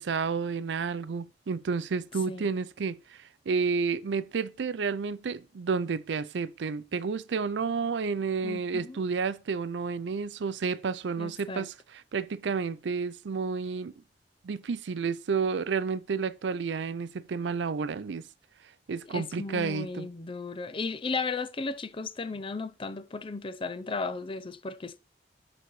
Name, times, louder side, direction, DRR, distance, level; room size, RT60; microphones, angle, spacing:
voice 1, 0.0-3.2 3.5-13.9 14.4-18.3 18.9-20.1, right 5 dB, 85° right, 0.5 m, -31 dB
voice 2, 8.4-9.1 11.2-11.7 19.1-25.0, left 4 dB, 30° left, 0.5 m, -35 dB
11.0 x 3.9 x 3.1 m
head